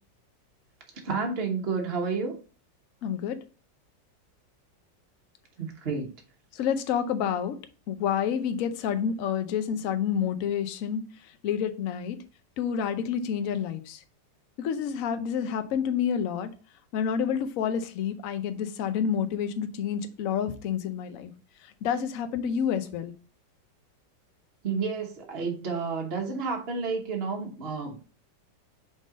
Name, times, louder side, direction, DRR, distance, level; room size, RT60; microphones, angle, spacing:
voice 1, 1.0-2.3 5.6-6.1 24.6-28.1, right 4 dB, 40° right, 1 dB, 1.1 m, -30 dB
voice 2, 3.0-3.4 6.5-7.6 7.9-11.0 11.4-12.2 12.6-14.0 14.6-16.5 16.9-21.3 21.8-23.1, left 8 dB, 60° left, 9 dB, 0.9 m, -28 dB
5.3 x 3.8 x 5.0 m, 0.37 s
omnidirectional pair, 2.0 m